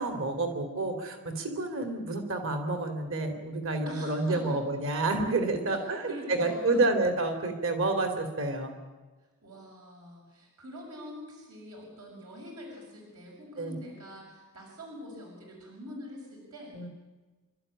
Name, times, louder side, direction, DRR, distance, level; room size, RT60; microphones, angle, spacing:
voice 1, 0.0-8.7 13.6-13.8 16.7-16.9, right 2 dB, 65° right, 6 dB, 2.9 m, -29 dB
voice 2, 3.8-4.6 5.7-7.0 9.4-16.9, equal, 85° right, -1 dB, 6.8 m, -44 dB
28.0 x 13.5 x 9.9 m, 1.3 s
head